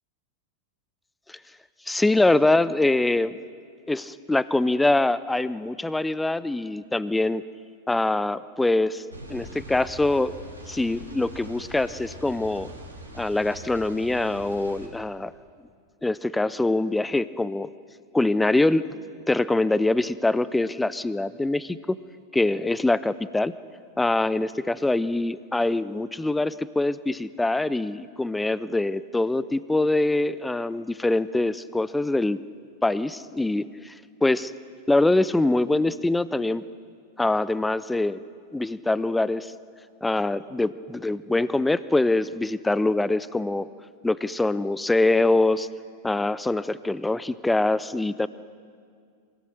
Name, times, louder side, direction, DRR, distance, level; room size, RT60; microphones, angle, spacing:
voice 1, 1.9-3.4 3.9-7.4 7.9-9.0 9.3-10.3 10.7-12.7 13.1-15.3 16.0-17.7 18.1-18.8 19.3-22.0 22.3-23.5 24.0-32.4 32.8-33.9 34.2-34.5 34.9-36.6 37.2-38.2 38.5-39.5 40.0-43.7 44.0-45.7 46.0-48.3, left 2 dB, 5° left, 17 dB, 0.5 m, -24 dB
sound 1, 9.1-14.9, equal, 85° right, 3.3 m, -42 dB
24.0 x 17.5 x 6.4 m, 2.2 s
figure-of-eight pair, 90°, 0 cm